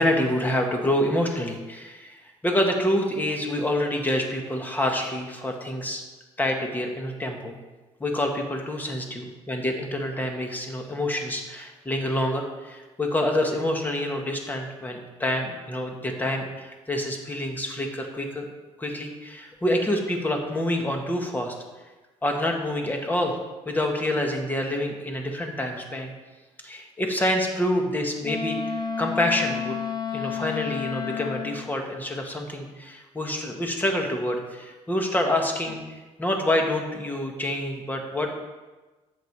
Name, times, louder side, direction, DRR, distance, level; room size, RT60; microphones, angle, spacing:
voice 1, 0.0-6.0 6.4-7.6 8.0-18.5 18.8-21.5 22.2-23.4 23.6-26.1 26.6-29.8 30.1-35.8 36.2-38.3, left 1 dB, 15° left, 2 dB, 1.8 m, -27 dB
Wind instrument woodwind instrument, 28.2-31.7, left 7 dB, 35° left, 0.8 m, -31 dB
10.5 x 8.3 x 4.8 m, 1.2 s
cardioid pair, 110°, 12 cm